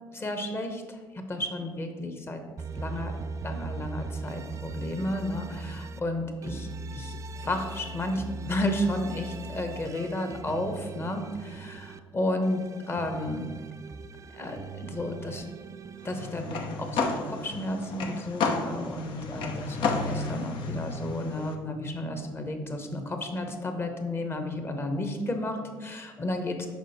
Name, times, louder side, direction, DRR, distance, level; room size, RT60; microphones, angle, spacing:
voice 1, 0.1-2.4 2.7-3.2 3.4-13.4 14.3-15.5 16.0-26.7, left 1 dB, 25° left, 5 dB, 1.0 m, -32 dB
sound 1, 2.6-6.0 6.4-12.0 12.4-16.3, right 3 dB, 35° right, 0.4 m, -39 dB
sound 2, 16.1-21.5, left 4 dB, 65° left, 0.8 m, -32 dB
6.1 x 5.0 x 4.2 m, 1.5 s
cardioid pair, 95°, 9 cm